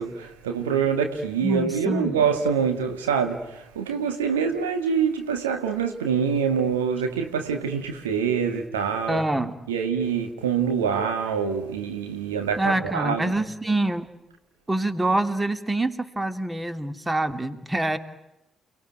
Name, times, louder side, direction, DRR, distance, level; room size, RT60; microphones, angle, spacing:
voice 1, 0.0-9.2 9.7-13.3, right 6 dB, 80° right, 2.0 m, -25 dB
voice 2, 1.4-2.2 9.1-9.6 12.6-14.1 14.7-18.0, right 2 dB, 15° right, 2.7 m, -25 dB
30.0 x 20.5 x 9.4 m
figure-of-eight pair, 40°, 0 cm